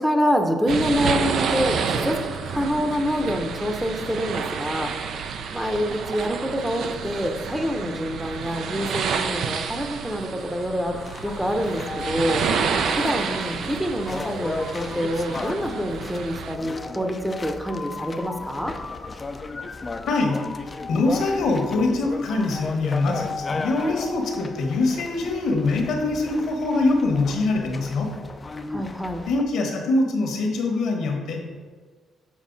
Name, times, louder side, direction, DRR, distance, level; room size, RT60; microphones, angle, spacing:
voice 1, 0.0-2.2 2.5-4.9 5.5-12.4 13.0-18.7 28.7-29.2, equal, 5° right, 4 dB, 0.7 m, -26 dB
sound 1, 0.7-16.5, right 6 dB, 70° right, 0.5 m, -29 dB
sound 2, 10.9-29.4, left 3 dB, 30° left, 0.4 m, -35 dB
voice 2, 20.1-20.4 20.9-28.1 29.3-31.5, left 3 dB, 80° left, 2 dB, 1.3 m, -23 dB
7.4 x 4.3 x 3.9 m, 1.5 s
cardioid pair, 90°, 0 cm